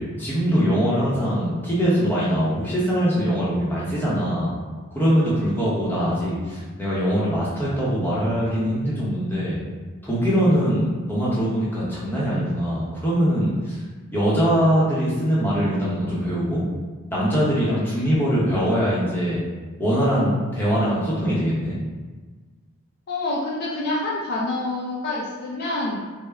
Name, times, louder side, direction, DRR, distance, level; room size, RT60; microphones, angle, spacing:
voice 1, 0.0-4.5 4.9-9.6 10.0-13.8 14.1-16.6 17.1-19.4 19.8-21.8, equal, 10° left, -8 dB, 0.7 m, -22 dB
voice 2, 23.1-26.1, left 2 dB, 45° left, -5 dB, 0.4 m, -27 dB
3.4 x 2.0 x 3.2 m, 1.3 s
head